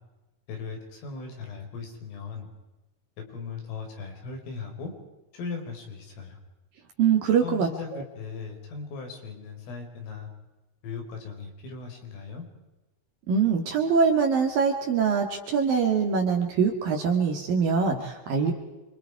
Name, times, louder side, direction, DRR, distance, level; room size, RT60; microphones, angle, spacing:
voice 1, 0.5-2.5 3.3-4.9 5.3-6.4 7.4-10.3 10.8-12.5, left 5 dB, 75° left, 2 dB, 7.3 m, -38 dB
voice 2, 7.0-8.0 13.3-18.5, right 6 dB, 55° right, 3 dB, 3.2 m, -23 dB
29.0 x 26.0 x 4.8 m, 1.1 s
omnidirectional pair, 5.8 m